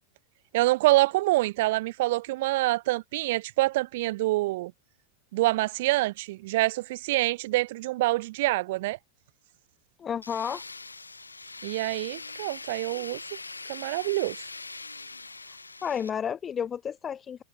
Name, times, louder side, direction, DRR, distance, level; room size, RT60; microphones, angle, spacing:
voice 1, 0.5-4.7 5.3-9.0 11.6-13.2 13.7-14.4, right 19 dB, 50° right, 0.4 m, -26 dB
voice 2, 10.0-10.6 15.8-17.4, left 8 dB, 20° left, 0.9 m, -31 dB
Tools, 10.2-16.1, left 3 dB, 80° left, 6.0 m, -42 dB
figure-of-eight pair, 90°, 0 cm